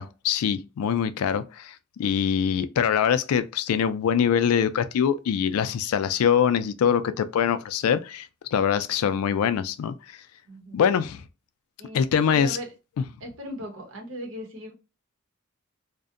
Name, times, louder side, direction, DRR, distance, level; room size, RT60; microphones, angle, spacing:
voice 1, 0.0-1.7 2.0-9.9 10.7-11.2 11.9-12.6, left 8 dB, 90° left, 0.3 m, -23 dB
voice 2, 10.5-10.9 11.8-12.7 13.2-14.7, left 1 dB, 70° right, 0.8 m, -38 dB
2.6 x 2.1 x 2.4 m
head